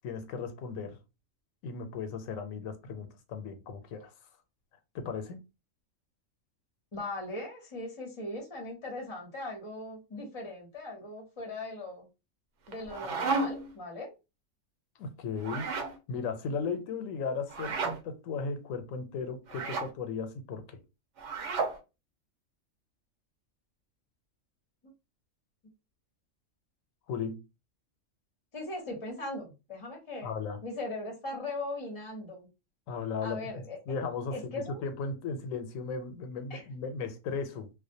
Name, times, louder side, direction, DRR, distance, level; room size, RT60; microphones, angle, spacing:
voice 1, 0.0-1.0 1.6-4.1 4.9-5.4 15.0-20.8 27.1-27.4 30.2-30.6 32.9-33.5 33.9-37.7, left 5 dB, 90° left, 1.0 m, -36 dB
voice 2, 6.9-12.1 12.7-14.1 28.5-30.3 30.6-32.5 33.2-33.8 34.3-34.8 36.5-36.6, left 2 dB, 30° left, 0.7 m, -39 dB
sound 1, 12.7-13.7 15.4-16.0 17.5-18.0 19.5-19.9 21.2-21.8, right 4 dB, 70° right, 0.9 m, -32 dB
2.4 x 2.1 x 2.6 m
omnidirectional pair, 1.3 m